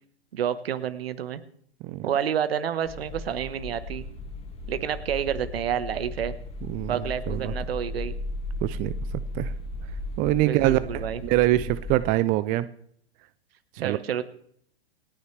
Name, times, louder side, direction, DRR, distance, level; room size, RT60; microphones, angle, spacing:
voice 1, 0.3-1.4 2.0-4.0 4.7-6.4 6.9-8.1 10.4-11.2 13.8-14.2, right 9 dB, 65° right, 13 dB, 1.4 m, -29 dB
sound 1, 2.9-12.1, left 1 dB, 20° left, 2.3 m, -35 dB
voice 2, 6.7-7.5 8.6-8.9 9.3-9.5 10.2-12.7 13.7-14.0, right 16 dB, 25° right, 16 dB, 0.5 m, -24 dB
28.0 x 9.5 x 3.4 m, 0.66 s
figure-of-eight pair, 105°, 32 cm